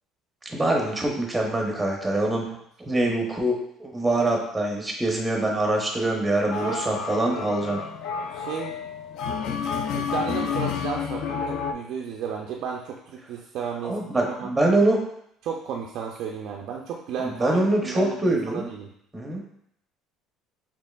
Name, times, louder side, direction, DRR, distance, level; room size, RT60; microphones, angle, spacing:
voice 1, 0.5-2.5 2.8-7.8 13.8-15.0 17.2-18.7 19.1-19.4, right 1 dB, 10° right, 0 dB, 0.6 m, -24 dB
sound 1, 6.5-11.7, left 6 dB, 60° left, 0.3 m, -30 dB
voice 2, 6.5-6.9 8.3-8.7 9.9-14.5 15.4-18.9, right 7 dB, 60° right, 0 dB, 0.3 m, -33 dB
4.3 x 2.8 x 2.2 m, 0.72 s
cardioid pair, 135°, 0 cm